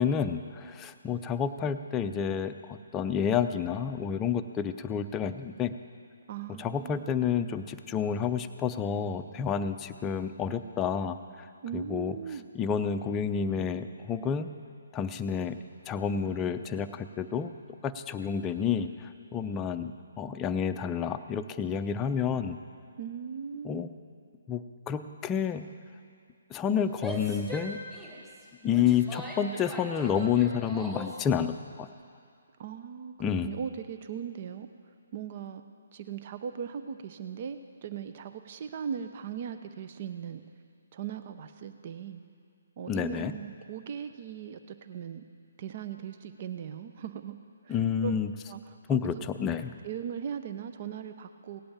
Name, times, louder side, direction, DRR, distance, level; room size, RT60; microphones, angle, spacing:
voice 1, 0.0-5.7 6.6-11.2 11.7-12.2 12.5-14.5 14.9-15.6 15.9-17.5 17.8-18.9 19.3-22.6 23.6-23.9 24.5-24.6 24.9-25.7 26.5-27.8 28.6-31.9 33.2-33.5 42.9-43.3 47.7-48.3 48.9-49.7, left 7 dB, 15° left, 8 dB, 0.6 m, -29 dB
voice 2, 6.3-7.1 11.6-12.5 23.0-23.9 32.6-34.7 35.1-35.6 35.9-40.4 40.9-42.2 42.8-45.2 45.6-47.4 47.6-48.2 48.5-48.8 49.1-49.2 49.8-51.6, right 8 dB, 45° right, 9 dB, 0.7 m, -38 dB
Female speech woman speaking / Yell, 26.9-31.2, equal, 10° right, 2.0 m, -41 dB
17.5 x 8.6 x 7.3 m, 2.3 s
figure-of-eight pair, 145°, 0 cm